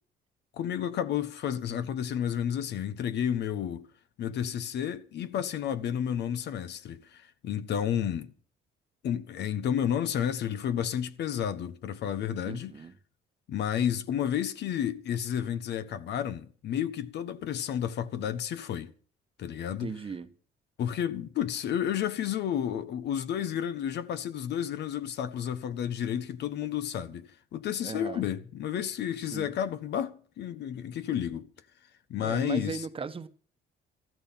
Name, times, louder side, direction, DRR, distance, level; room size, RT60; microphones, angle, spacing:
voice 1, 0.6-3.9 4.2-8.3 9.0-12.8 13.5-18.9 19.4-20.0 20.8-31.5 32.1-32.8, left 9 dB, 70° left, 1.3 m, -31 dB
voice 2, 12.4-12.9 19.8-20.3 27.8-28.3 29.3-29.5 32.2-33.3, right 5 dB, 30° right, 1.2 m, -37 dB
14.0 x 12.5 x 5.8 m
cardioid pair, 120°, 18 cm